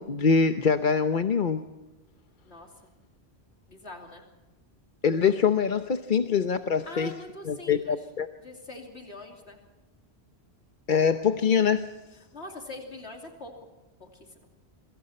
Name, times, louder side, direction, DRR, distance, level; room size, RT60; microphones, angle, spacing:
voice 1, 0.0-1.6 5.0-7.1 7.5-8.3 10.9-11.9, left 6 dB, 50° left, 8 dB, 1.0 m, -24 dB
voice 2, 3.7-4.2 6.8-8.0 8.4-9.6 12.3-13.7 14.0-14.5, left 2 dB, 80° left, 2 dB, 3.2 m, -43 dB
27.0 x 24.0 x 4.3 m, 1.1 s
omnidirectional pair, 1.1 m